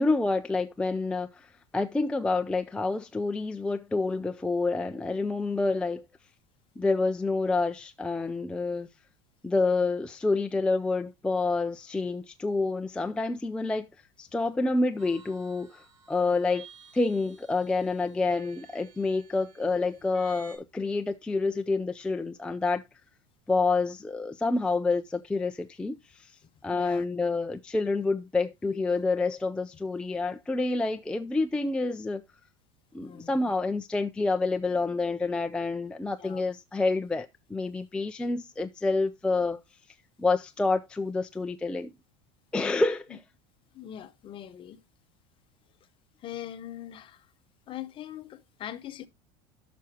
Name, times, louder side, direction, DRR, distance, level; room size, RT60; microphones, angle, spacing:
voice 1, 0.0-1.5 1.7-6.0 6.8-8.9 9.4-13.9 14.2-16.7 16.9-22.8 23.5-26.3 26.6-32.2 32.9-39.6 40.2-41.9 42.5-43.2, left 3 dB, 5° left, 0.4 m, -28 dB
sound 1, 15.0-20.6, right 5 dB, 85° right, 3.7 m, -53 dB
voice 2, 26.7-27.0 33.0-33.3 36.2-36.4 43.7-44.8 46.2-47.3 47.7-49.1, left 11 dB, 35° left, 0.8 m, -41 dB
13.0 x 6.1 x 2.8 m
supercardioid pair, 130°, 16 cm